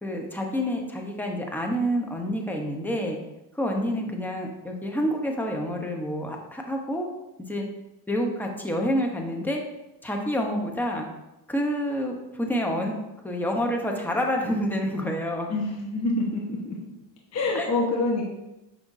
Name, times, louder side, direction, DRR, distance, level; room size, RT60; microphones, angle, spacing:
voice 1, 0.0-3.2 3.5-7.1 7.5-7.6 8.1-9.6 10.0-11.1 11.5-13.0 13.2-15.5 17.5-17.7, equal, 5° left, 1 dB, 0.9 m, -28 dB
voice 2, 15.5-16.8 17.3-18.2, left 2 dB, 30° left, -2 dB, 1.2 m, -26 dB
6.0 x 5.8 x 2.7 m, 0.95 s
supercardioid pair, 100°, 50 cm